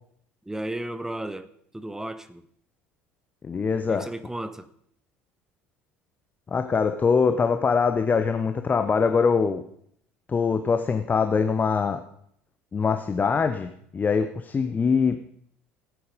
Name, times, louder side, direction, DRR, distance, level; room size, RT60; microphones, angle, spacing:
voice 1, 0.4-1.5 1.7-2.4 3.9-4.7, right 1 dB, 5° right, 1.1 m, -34 dB
voice 2, 3.4-4.1 6.5-9.6 10.3-12.0 12.7-15.3, left 5 dB, 25° left, 1.0 m, -23 dB
16.5 x 9.2 x 5.2 m
figure-of-eight pair, 60°, 7 cm